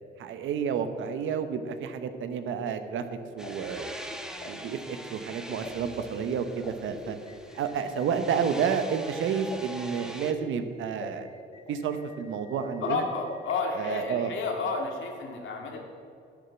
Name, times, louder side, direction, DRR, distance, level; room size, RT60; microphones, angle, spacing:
voice 1, 0.2-3.9 4.4-7.2 7.5-11.3 11.7-13.0 13.7-14.3, right 7 dB, 75° right, 9 dB, 1.0 m, -30 dB
sound 1, 2.0-14.8, left 2 dB, 30° left, 1.5 m, -45 dB
sound 2, 3.4-10.3, equal, 5° right, 1.1 m, -43 dB
voice 2, 12.8-15.8, left 4 dB, 75° left, 2 dB, 2.2 m, -31 dB
10.0 x 9.6 x 5.8 m, 2.6 s
cardioid pair, 90°, 20 cm